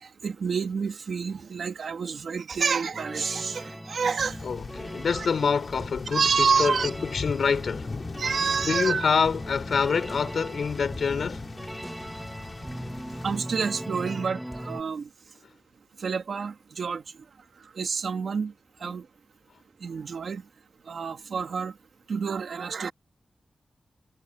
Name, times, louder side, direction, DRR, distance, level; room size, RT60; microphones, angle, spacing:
voice 1, 0.0-4.4 5.1-5.3 6.1-6.9 8.2-9.1 13.2-15.1 16.0-17.0 17.6-18.5 18.8-19.1 19.8-20.4 20.9-21.7 22.1-22.9, right 5 dB, 75° right, 2.5 m, -28 dB
sound 1, 2.9-14.8, equal, 5° right, 1.5 m, -39 dB
sound 2, 4.2-13.4, left 4 dB, 50° left, 4.9 m, -40 dB
voice 2, 4.4-7.9 8.7-11.5, left 6 dB, 80° left, 3.7 m, -26 dB
wide cardioid pair, 105°, 0 cm